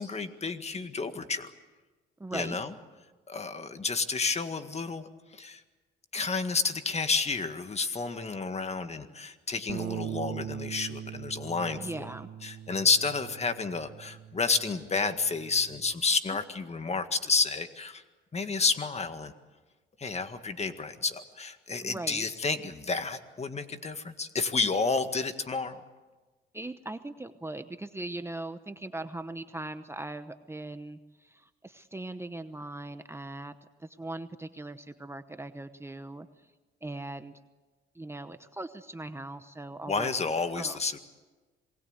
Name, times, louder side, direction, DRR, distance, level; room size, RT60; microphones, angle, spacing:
voice 1, 0.0-1.5 2.3-2.7 3.3-5.1 5.3-5.6 6.1-12.1 12.4-18.0 18.3-19.3 20.0-25.8 39.9-41.0, left 4 dB, 35° left, 9 dB, 1.8 m, -30 dB
voice 2, 2.2-2.6 11.8-12.3 21.8-22.2 26.5-36.3 36.8-37.3 37.9-40.1 40.5-40.8, right 2 dB, 15° right, 10 dB, 0.9 m, -40 dB
Bass guitar, 9.7-15.9, right 10 dB, 70° right, 1.3 m, -41 dB
27.0 x 19.5 x 8.1 m, 1.3 s
cardioid pair, 90°, 20 cm